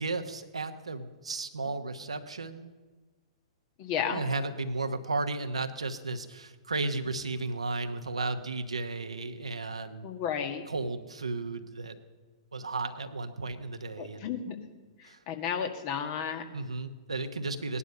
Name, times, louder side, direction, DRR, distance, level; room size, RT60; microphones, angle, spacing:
voice 1, 0.0-2.7 4.1-10.2 10.7-11.9 12.5-14.3 15.0-15.2 16.5-17.8, right 3 dB, 80° right, 7 dB, 1.1 m, -34 dB
voice 2, 3.8-4.2 10.0-10.6 14.0-14.5 15.0-16.6, left 7 dB, 40° left, 5 dB, 1.7 m, -33 dB
18.5 x 11.0 x 5.5 m, 1.3 s
figure-of-eight pair, 110°, 3 cm